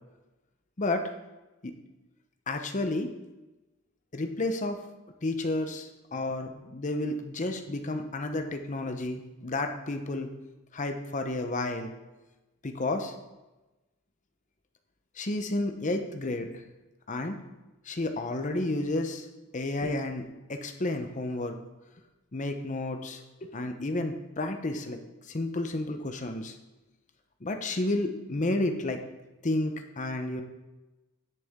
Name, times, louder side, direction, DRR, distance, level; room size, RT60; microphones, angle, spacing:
voice 1, 2.5-3.1 4.1-4.8 5.2-10.3 10.7-11.9 12.6-13.1 15.2-16.5 17.1-17.4 17.9-19.3 19.5-21.6 22.3-25.0 25.3-26.5 27.4-29.0 29.4-30.4, left 2 dB, 35° left, 6 dB, 0.7 m, -31 dB
10.0 x 6.8 x 3.6 m, 1.1 s
head